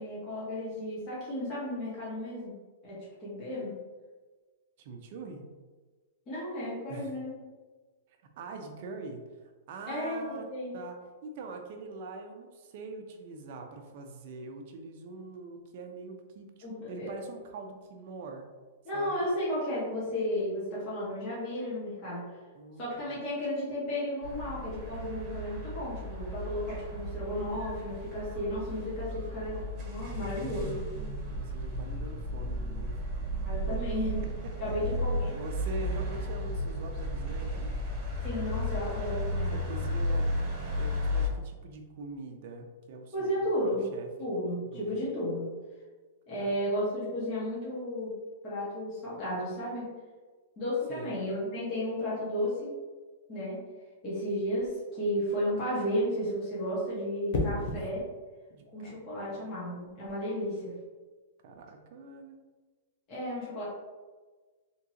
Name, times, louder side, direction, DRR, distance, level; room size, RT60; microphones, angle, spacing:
voice 1, 0.0-2.6 2.8-2.9 3.2-3.7 6.3-7.4 9.8-10.7 16.6-17.1 18.8-22.4 22.8-30.8 33.4-34.2 34.6-35.4 38.2-39.6 43.1-43.9 44.2-45.5 46.3-48.1 48.4-49.9 50.6-52.7 53.3-53.6 54.0-58.0 58.7-60.7 63.1-63.6, equal, 35° left, -8 dB, 1.5 m, -33 dB
voice 2, 4.8-5.5 6.9-7.1 8.2-9.2 9.7-10.5 10.7-18.5 18.9-19.1 22.5-23.2 31.3-33.0 33.7-33.8 34.4-34.5 35.3-37.7 39.5-40.4 40.7-44.1 44.5-44.9 46.4-46.5 50.9-51.1 57.5-57.7 58.5-59.0 59.3-59.6 60.6-60.7 61.4-62.4, right 3 dB, 55° right, 4 dB, 0.6 m, -44 dB
sound 1, 24.2-41.3, left 1 dB, 30° right, 1.0 m, -34 dB
sound 2, 54.5-54.8 57.3-57.9 59.8-60.1, left 2 dB, 60° left, 0.8 m, -32 dB
3.6 x 3.0 x 2.8 m, 1.3 s
hypercardioid pair, 140°, 0 cm